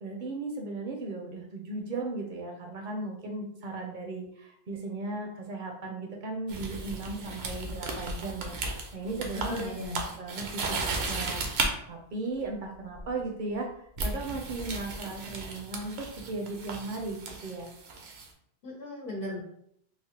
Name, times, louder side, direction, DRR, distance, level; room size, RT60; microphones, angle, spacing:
voice 1, 0.0-9.8 10.2-11.5 11.9-13.7 14.0-17.7, right 3 dB, 60° right, 1 dB, 0.6 m, -36 dB
sound 1, 6.5-11.7 13.0-13.2 14.0-18.3, right 3 dB, 85° right, 0.8 m, -35 dB
voice 2, 9.3-10.0 18.6-19.4, left 2 dB, 80° left, -4 dB, 1.0 m, -37 dB
3.2 x 2.0 x 2.7 m, 0.70 s
omnidirectional pair, 1.1 m